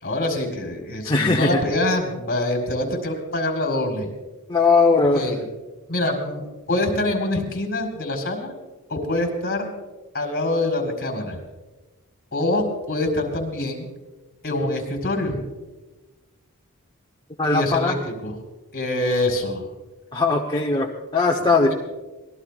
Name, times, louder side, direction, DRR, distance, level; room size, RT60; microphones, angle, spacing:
voice 1, 0.0-4.1 5.1-5.4 5.9-8.5 8.9-9.7 10.1-11.4 12.3-13.9 14.4-15.4 17.4-18.3 18.7-19.6, left 1 dB, 45° left, 2 dB, 4.9 m, -25 dB
voice 2, 1.0-1.6 4.5-5.3 17.4-18.0 20.1-21.7, left 3 dB, 20° left, -1 dB, 1.0 m, -19 dB
26.5 x 20.0 x 2.5 m, 1.2 s
head